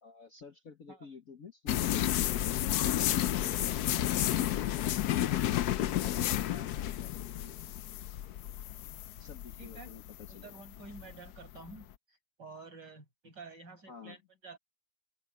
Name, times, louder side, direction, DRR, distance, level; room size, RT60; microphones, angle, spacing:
voice 1, 0.0-2.1 5.1-7.6 9.2-10.6 13.9-14.2, left 6 dB, 45° left, 1.5 m, -50 dB
sound 1, 1.7-11.8, left 13 dB, 85° left, 0.8 m, -31 dB
voice 2, 9.6-9.9 10.3-14.6, right 3 dB, 50° right, 7.6 m, -50 dB
open air
omnidirectional pair, 2.4 m